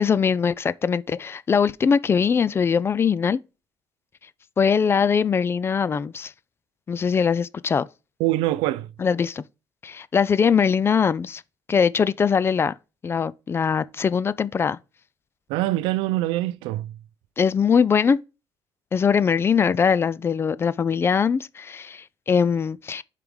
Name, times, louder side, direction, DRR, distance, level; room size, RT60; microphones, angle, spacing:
voice 1, 0.0-3.4 4.6-6.3 6.9-7.9 9.0-9.4 9.8-11.4 11.7-12.7 13.0-14.8 17.4-18.2 18.9-23.0, left 6 dB, 30° left, 0.3 m, -21 dB
voice 2, 8.2-8.9 15.5-17.0, right 16 dB, 90° right, 0.4 m, -24 dB
5.2 x 5.0 x 4.7 m
cardioid pair, 105°, 8 cm